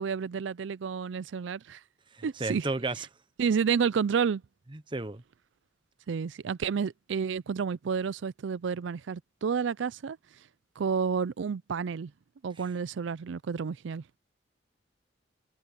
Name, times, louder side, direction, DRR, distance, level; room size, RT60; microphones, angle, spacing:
voice 1, 0.0-1.8 2.2-2.7 3.4-4.4 6.1-10.2 10.8-12.1 12.4-14.0, right 6 dB, 75° right, 0.4 m, -30 dB
voice 2, 2.1-3.1 4.9-5.2, right 3 dB, 25° right, 0.8 m, -32 dB
head